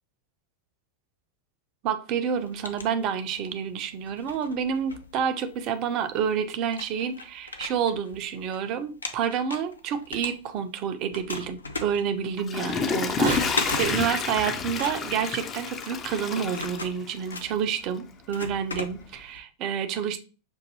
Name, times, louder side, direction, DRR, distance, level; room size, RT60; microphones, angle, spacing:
voice 1, 1.8-20.2, right 7 dB, 40° right, 0.5 m, -29 dB
sound 1, 2.3-3.6 4.0-5.7 6.3-6.4 6.7-8.6 8.9-10.8 11.1-19.4, left 3 dB, 75° left, 0.5 m, -37 dB
Water / Toilet flush, 12.2-17.5 18.0-18.1, left 5 dB, 25° left, 0.4 m, -29 dB
Bird vocalization bird call bird song / Telephone, 13.2-17.0 17.5-17.6 18.4-18.5 19.2-19.3, right 4 dB, 65° right, 0.9 m, -39 dB
6.2 x 2.6 x 2.7 m
figure-of-eight pair, 90°, 0 cm